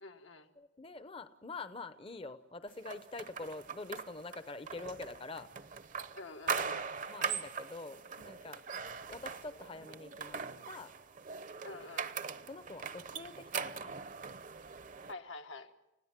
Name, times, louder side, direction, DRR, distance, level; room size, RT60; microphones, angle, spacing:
voice 1, 0.0-0.5 6.1-6.9 11.6-12.1 15.1-15.7, left 2 dB, 85° left, 1.7 m, -47 dB
voice 2, 0.6-5.5 7.1-8.6 9.1-10.4 10.7-10.9 11.7-11.8 12.5-13.9, left 3 dB, 30° left, 0.7 m, -45 dB
sound 1, 2.9-15.1, right 6 dB, 45° right, 0.8 m, -41 dB
30.0 x 16.5 x 7.4 m
head